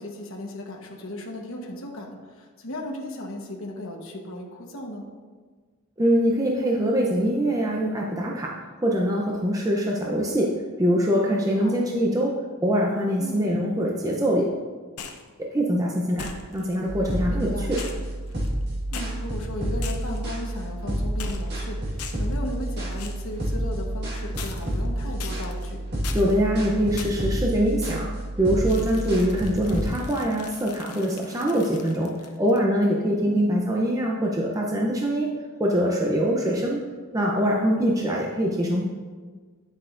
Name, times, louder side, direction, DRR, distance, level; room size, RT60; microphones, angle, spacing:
voice 1, 0.0-5.1 11.6-11.8 13.2-13.5 17.3-17.7 18.9-25.8 33.2-33.6, left 1 dB, 65° left, 0 dB, 1.2 m, -36 dB
voice 2, 6.0-8.5 8.8-10.5 10.8-12.4 12.6-14.5 15.4-16.3 16.5-17.7 26.1-28.1 28.4-32.1 32.4-35.3 35.6-36.8 37.1-38.8, equal, 15° right, -2 dB, 0.6 m, -23 dB
sound 1, 15.0-15.3 16.2-16.8 17.8-18.6 18.9-19.1 19.8-20.3 21.2-21.6 22.0-22.4 23.0-23.3 24.4-24.9 25.2-25.7 26.0-26.3 27.0-27.3 28.7-32.6, left 5 dB, 90° left, 0.8 m, -40 dB
sound 2, 16.9-29.9, right 1 dB, 50° right, 1.8 m, -29 dB
9.8 x 7.8 x 2.6 m, 1.5 s
head